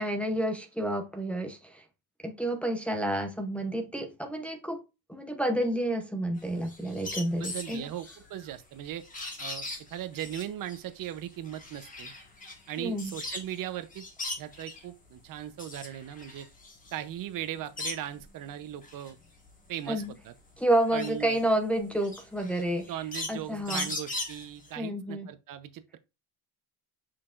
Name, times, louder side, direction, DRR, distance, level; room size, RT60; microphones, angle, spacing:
voice 1, 0.0-1.8 2.2-4.8 5.1-7.9 12.8-13.1 19.9-20.1 20.6-22.9 23.3-23.9 24.8-25.3, right 1 dB, 5° left, 0.7 m, -30 dB
sound 1, 6.4-13.6 13.9-14.9 15.3-18.3 18.7-24.7, left 2 dB, 20° left, 1.5 m, -40 dB
voice 2, 7.4-9.0 9.4-12.1 12.7-14.1 14.4-16.5 16.9-19.2 19.7-20.3 20.9-21.4 22.9-26.0, right 11 dB, 50° right, 0.7 m, -38 dB
6.5 x 5.9 x 2.4 m
cardioid pair, 150°, 42 cm